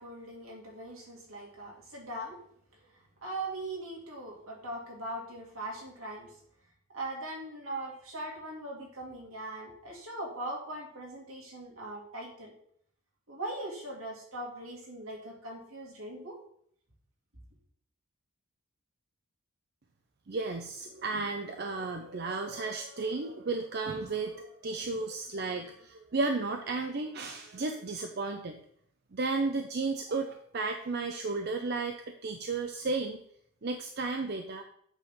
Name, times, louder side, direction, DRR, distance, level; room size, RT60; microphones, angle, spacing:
voice 1, 0.0-2.4 3.2-6.3 6.9-12.5 13.3-16.4, right 1 dB, 75° right, -2 dB, 2.3 m, -40 dB
voice 2, 20.3-28.6 29.1-32.0 32.2-33.2 33.6-34.6, right 3 dB, 45° right, 5 dB, 0.5 m, -33 dB
8.1 x 3.5 x 5.8 m, 0.65 s
head